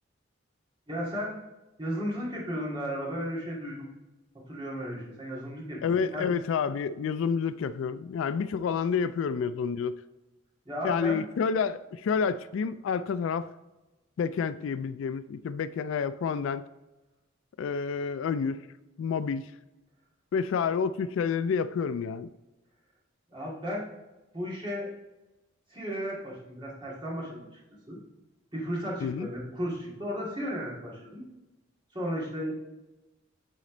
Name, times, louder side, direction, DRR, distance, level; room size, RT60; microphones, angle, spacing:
voice 1, 0.9-1.4 1.8-3.9 4.5-6.3 10.6-11.2 23.3-23.9 24.3-24.9 25.7-27.6 27.9-28.0 28.5-31.2 31.9-32.5, equal, 25° right, 2.3 m, -34 dB
voice 2, 5.8-10.0 10.8-13.5 14.2-16.6 17.6-18.6 19.0-19.5 20.3-22.3 29.0-29.3, left 6 dB, 70° left, 0.3 m, -29 dB
9.3 x 4.2 x 3.8 m
head